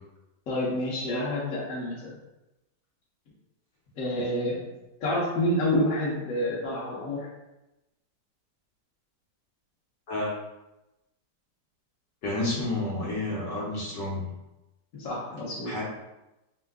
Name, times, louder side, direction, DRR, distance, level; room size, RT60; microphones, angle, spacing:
voice 1, 0.5-2.1 3.9-4.6 5.0-7.3 14.9-15.7, left 1 dB, 50° left, -5 dB, 1.3 m, -28 dB
voice 2, 12.2-14.3 15.6-15.8, left 2 dB, 70° left, -5 dB, 1.4 m, -30 dB
4.7 x 2.1 x 3.5 m, 0.97 s
omnidirectional pair, 2.0 m